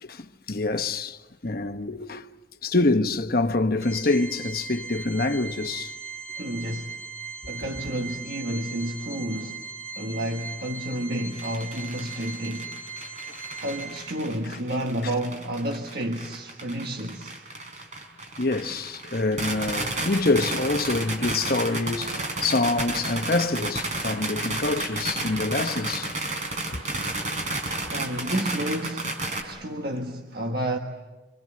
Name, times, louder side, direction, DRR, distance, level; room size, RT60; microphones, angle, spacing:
voice 1, 0.0-2.2 2.6-5.9 18.4-26.1 26.7-26.8, left 2 dB, 50° left, 1.1 m, -26 dB
Organ, 3.8-14.4, right 5 dB, 5° left, 5.6 m, -39 dB
voice 2, 6.4-6.9 7.5-12.8 13.6-17.4 27.9-29.1 29.4-30.8, right 1 dB, 50° right, 1.6 m, -30 dB
sound 1, 11.3-29.4, right 2 dB, 35° right, 5.2 m, -32 dB
28.0 x 27.0 x 7.6 m
head